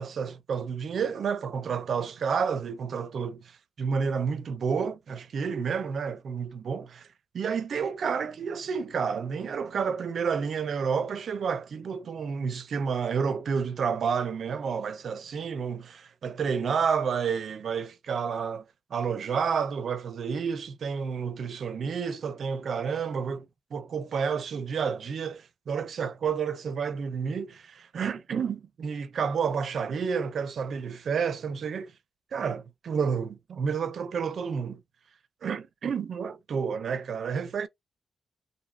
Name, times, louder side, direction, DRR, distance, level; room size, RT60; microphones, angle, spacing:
voice 1, 0.0-7.1 7.3-18.7 18.9-31.9 32.3-34.8 35.4-37.7, right 6 dB, 55° right, 0.4 m, -30 dB
2.6 x 2.4 x 4.0 m
wide cardioid pair, 175°, 0 cm